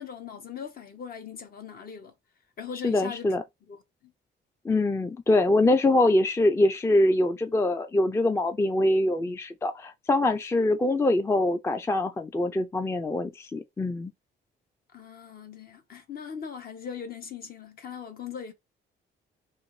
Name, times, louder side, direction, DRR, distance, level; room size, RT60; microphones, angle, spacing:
voice 1, 0.0-2.1 2.6-3.3 3.7-4.1 14.9-18.5, left 7 dB, 50° left, 0.9 m, -40 dB
voice 2, 2.8-3.4 4.6-14.1, left 2 dB, 15° left, 0.4 m, -24 dB
2.5 x 2.5 x 3.1 m
cardioid pair, 90°, 20 cm